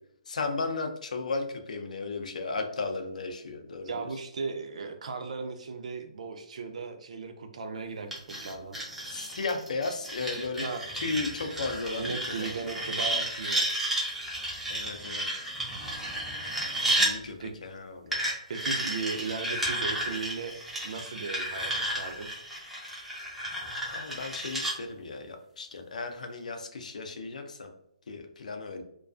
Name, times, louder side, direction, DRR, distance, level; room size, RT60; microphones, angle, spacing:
voice 1, 0.3-4.1 9.0-10.7 10.9-12.5 14.7-15.4 17.0-18.2 23.9-27.7 28.1-28.8, left 3 dB, 80° left, 5 dB, 0.4 m, -35 dB
voice 2, 3.8-8.8 10.6-10.8 12.0-13.8 17.4-17.5 18.1-22.3, right 4 dB, 65° right, 7 dB, 0.4 m, -37 dB
sound 1, 8.1-17.1 18.1-24.7, right 1 dB, 5° right, 0.4 m, -32 dB
2.3 x 2.3 x 2.4 m, 0.75 s
hypercardioid pair, 165°, 4 cm